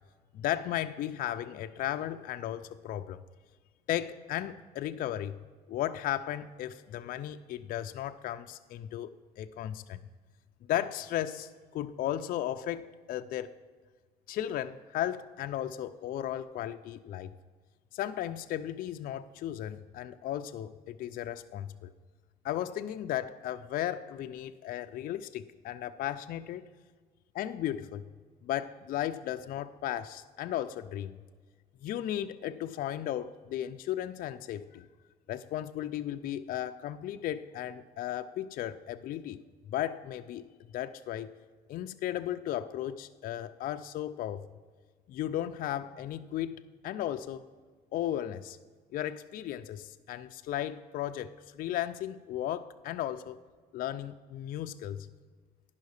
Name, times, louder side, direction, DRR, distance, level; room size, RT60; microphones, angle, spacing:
voice 1, 0.3-3.2 3.9-5.4 5.7-9.1 9.4-10.0 10.7-13.5 14.3-17.3 17.9-21.9 22.4-26.6 27.3-28.1 28.4-31.2 31.8-34.9 35.3-39.4 39.7-40.5 40.7-41.3 41.7-44.5 45.1-47.4 47.9-48.6 48.9-53.4 53.7-55.1, left 12 dB, 60° left, 8 dB, 0.4 m, -35 dB
10.5 x 5.6 x 6.4 m, 1.5 s
cardioid pair, 110°, 17 cm